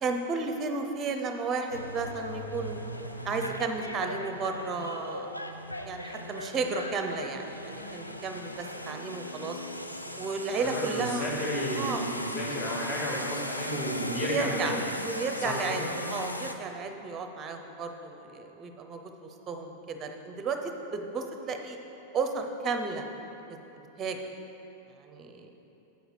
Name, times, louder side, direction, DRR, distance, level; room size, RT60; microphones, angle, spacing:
voice 1, 0.0-2.8 3.2-5.5 5.8-9.6 10.2-11.2 11.7-12.1 14.2-14.8 15.0-19.0 19.5-21.8 22.1-23.0 24.0-24.2 25.0-25.5, right 4 dB, 25° right, 5 dB, 0.7 m, -33 dB
sound 1, 1.7-16.5, left 1 dB, 85° left, 0.4 m, -38 dB
voice 2, 10.6-14.8 15.4-15.8, equal, 35° left, -3 dB, 2.0 m, -32 dB
8.1 x 6.4 x 4.8 m, 3.0 s
figure-of-eight pair, 90°, 0 cm